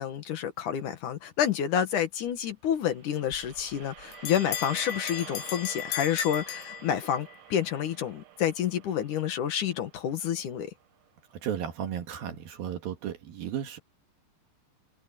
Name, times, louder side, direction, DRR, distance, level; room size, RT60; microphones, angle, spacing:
voice 1, 0.0-10.7, left 9 dB, 60° left, 2.3 m, -29 dB
sound 1, 2.8-11.1, right 11 dB, 85° right, 4.2 m, -48 dB
Bell, 3.3-7.4, left 13 dB, 85° left, 3.7 m, -37 dB
voice 2, 11.3-13.8, right 9 dB, 60° right, 2.9 m, -34 dB
omnidirectional pair, 5.5 m